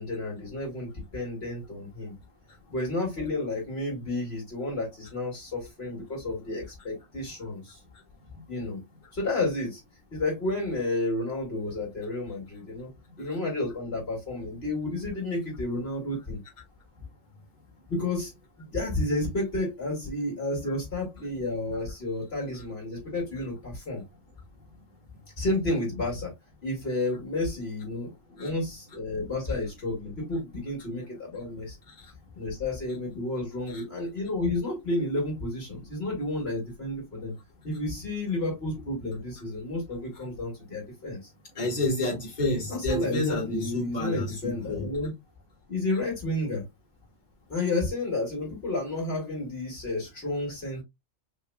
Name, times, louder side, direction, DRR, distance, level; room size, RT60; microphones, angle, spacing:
voice 1, 0.0-2.1 2.7-7.8 8.5-8.8 9.1-9.8 10.1-12.9 13.2-16.4 17.9-24.0 25.4-26.3 26.6-31.8 32.3-37.3 37.6-41.2 42.7-45.1 45.7-46.6 47.5-50.8, left 2 dB, 50° left, 2.5 m, -31 dB
voice 2, 41.6-44.8, left 2 dB, 35° left, 2.1 m, -30 dB
5.5 x 3.0 x 2.3 m
omnidirectional pair, 1.3 m